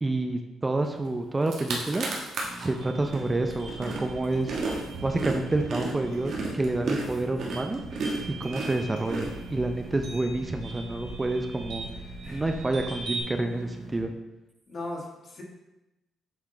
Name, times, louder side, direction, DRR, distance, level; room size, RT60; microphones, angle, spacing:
voice 1, 0.0-2.1 2.6-4.6 5.0-7.8 8.3-11.9 12.3-14.1, right 2 dB, 20° right, 5 dB, 0.5 m, -28 dB
sound 1, 1.1-1.2 1.4-2.7 3.1-9.9, right 3 dB, 65° right, 1.3 m, -33 dB
sound 2, 2.4-14.0, right 1 dB, ahead, 1.6 m, -45 dB
sound 3, 2.7-13.2, right 3 dB, 90° right, 1.8 m, -42 dB
voice 2, 14.7-15.4, left 2 dB, 45° left, 0 dB, 1.4 m, -38 dB
7.8 x 3.7 x 3.8 m, 1.0 s
cardioid pair, 90°, 0 cm